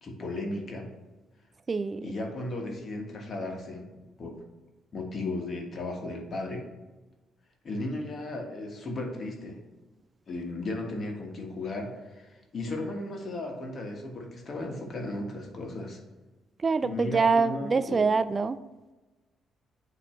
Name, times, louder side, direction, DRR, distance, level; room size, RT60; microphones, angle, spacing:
voice 1, 0.0-0.9 2.0-3.9 4.2-4.4 4.9-6.7 7.6-9.6 10.3-16.0 16.8-18.1, left 2 dB, 50° left, 1 dB, 1.4 m, -35 dB
voice 2, 1.7-2.1 16.6-18.6, right 4 dB, 35° right, 14 dB, 0.3 m, -25 dB
8.7 x 3.1 x 4.4 m, 1.2 s
cardioid pair, 90°, 0 cm